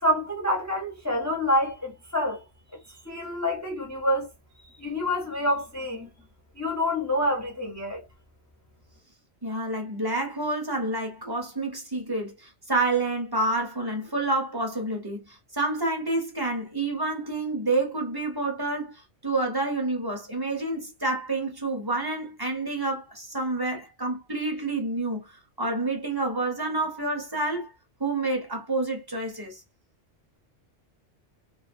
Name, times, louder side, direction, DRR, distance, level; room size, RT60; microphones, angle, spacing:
voice 1, 0.0-2.4 3.0-4.3 4.8-6.1 6.6-8.0, left 1 dB, 20° left, 0.6 m, -27 dB
voice 2, 9.4-27.7 28.0-29.6, right 2 dB, 25° right, 0.7 m, -28 dB
2.5 x 2.3 x 2.5 m
omnidirectional pair, 1.2 m